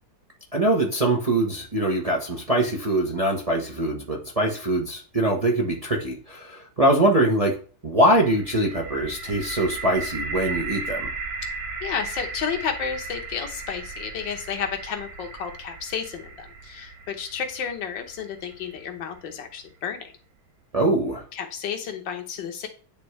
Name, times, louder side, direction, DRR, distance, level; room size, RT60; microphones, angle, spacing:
voice 1, 0.5-7.5 7.8-11.1 20.7-21.2, right 1 dB, 25° right, -2 dB, 0.8 m, -23 dB
sound 1, 8.1-20.0, right 3 dB, 75° right, 1.6 m, -36 dB
voice 2, 11.8-20.1 21.3-22.7, left 7 dB, 80° left, 5 dB, 1.7 m, -32 dB
10.0 x 3.5 x 3.2 m, 0.39 s
omnidirectional pair, 2.0 m